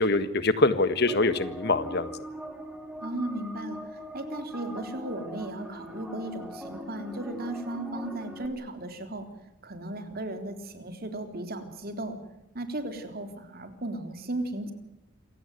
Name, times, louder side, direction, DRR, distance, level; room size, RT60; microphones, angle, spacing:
voice 1, 0.0-2.1, left 2 dB, 55° left, 12 dB, 1.6 m, -24 dB
sound 1, 1.1-8.5, equal, 5° right, 3.4 m, -41 dB
voice 2, 3.0-9.3 9.6-12.2 12.5-14.7, right 1 dB, 45° right, 7 dB, 3.7 m, -36 dB
27.5 x 17.0 x 9.4 m, 0.88 s
head